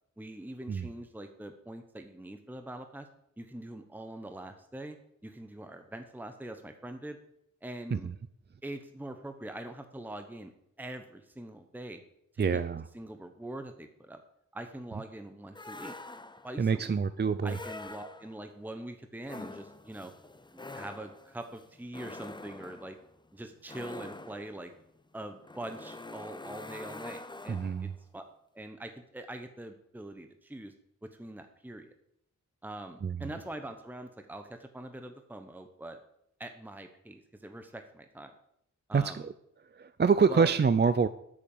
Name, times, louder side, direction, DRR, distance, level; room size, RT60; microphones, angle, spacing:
voice 1, 0.2-3.1 3.4-5.0 5.2-7.2 7.6-8.1 8.6-10.5 10.8-12.0 12.3-12.6 12.9-14.2 14.5-15.9 16.4-16.8 17.4-20.1 20.5-23.0 23.3-24.7 25.1-28.2 28.5-30.7 31.0-31.9 32.6-36.0 36.4-38.3 38.9-39.3 40.3-40.5, right 1 dB, 5° right, 6 dB, 1.0 m, -43 dB
voice 2, 12.4-12.8 16.6-17.6 27.5-27.9 33.0-33.3 38.9-39.3 39.8-41.1, right 5 dB, 35° right, 12 dB, 0.5 m, -26 dB
sound 1, 15.5-16.6 17.4-18.5 19.2-27.9, left 2 dB, 15° left, 0.6 m, -46 dB
8.9 x 8.4 x 7.1 m, 0.74 s
wide cardioid pair, 95°, 31 cm